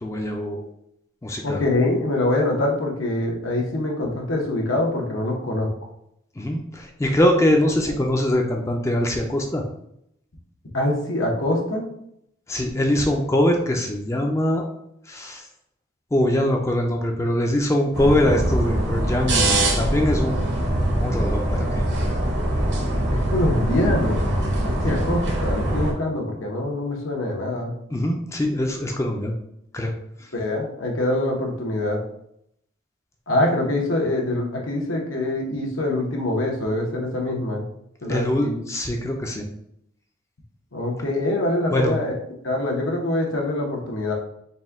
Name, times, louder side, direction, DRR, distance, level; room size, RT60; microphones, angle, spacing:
voice 1, 0.0-0.7 1.2-1.6 6.4-9.6 12.5-14.6 15.1-15.4 16.1-20.5 21.0-21.8 27.9-29.3 29.7-29.9 38.1-39.5 41.7-42.0, left 1 dB, 15° left, 2 dB, 0.3 m, -23 dB
voice 2, 1.4-5.7 7.8-7.9 10.7-11.9 23.1-24.3 24.6-27.7 30.3-32.0 33.3-37.6 38.0-38.6 40.7-42.1 42.4-44.1, left 1 dB, 85° left, 0 dB, 0.9 m, -24 dB
sound 1, 17.9-25.9, right 1 dB, 60° right, 0.8 m, -23 dB
4.1 x 2.2 x 3.5 m, 0.75 s
head